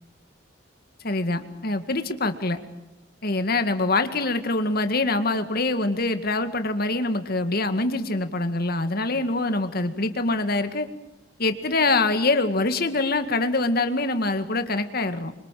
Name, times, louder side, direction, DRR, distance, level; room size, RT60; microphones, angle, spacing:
voice 1, 1.0-2.6 3.2-10.9 11.4-15.3, left 2 dB, 55° left, 8 dB, 2.0 m, -24 dB
26.5 x 24.5 x 7.6 m, 0.97 s
head